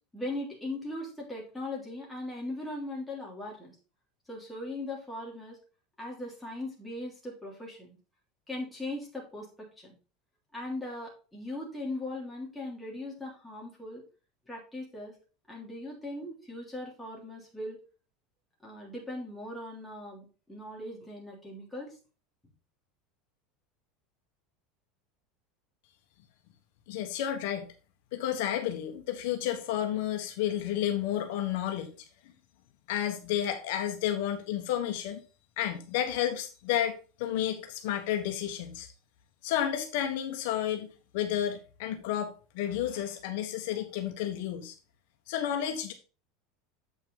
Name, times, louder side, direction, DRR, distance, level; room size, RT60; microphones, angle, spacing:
voice 1, 0.1-3.7 4.3-5.6 6.0-8.0 8.5-9.9 10.5-14.0 14.5-15.1 15.5-17.8 18.6-22.0, left 1 dB, 5° left, 3.3 m, -39 dB
voice 2, 26.9-27.7 28.1-31.9 32.9-35.2 35.6-38.9 39.4-40.9 41.1-44.7 45.3-45.9, left 11 dB, 70° left, 1.3 m, -31 dB
8.2 x 5.6 x 4.0 m
supercardioid pair, 145°, 0 cm